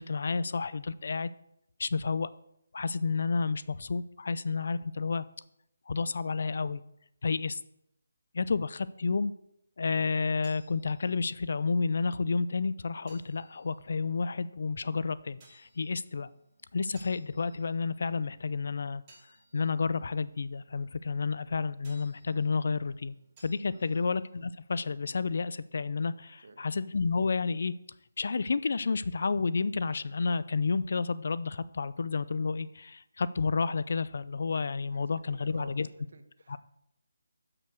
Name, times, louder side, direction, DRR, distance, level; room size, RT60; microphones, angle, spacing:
voice 1, 0.0-1.3 1.8-2.3 2.7-5.2 5.9-6.8 7.2-7.6 8.3-9.3 9.8-16.3 16.7-19.0 19.5-23.1 23.4-27.7 28.2-35.9 36.5-36.6, left 4 dB, 60° left, 16 dB, 0.4 m, -30 dB
sound 1, 10.2-25.6, right 2 dB, 25° right, 2.8 m, -64 dB
voice 2, 26.4-26.7 34.9-36.6, right 3 dB, 60° right, 8 dB, 1.0 m, -53 dB
6.6 x 5.9 x 6.1 m, 0.78 s
figure-of-eight pair, 155°, 0 cm